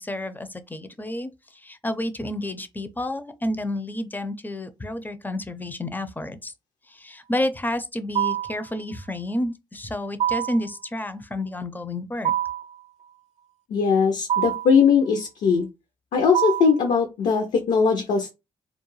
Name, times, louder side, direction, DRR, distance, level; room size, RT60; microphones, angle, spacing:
voice 1, 0.0-6.5 6.9-12.3, left 1 dB, 15° left, 0.5 m, -30 dB
sound 1, 8.1-8.6 10.2-10.7 12.2-12.7 14.3-14.8 16.3-16.8, right 11 dB, 65° right, 0.5 m, -25 dB
voice 2, 13.7-15.7 16.1-18.3, left 5 dB, 70° left, 0.6 m, -20 dB
2.3 x 2.0 x 3.0 m
supercardioid pair, 60°, 13 cm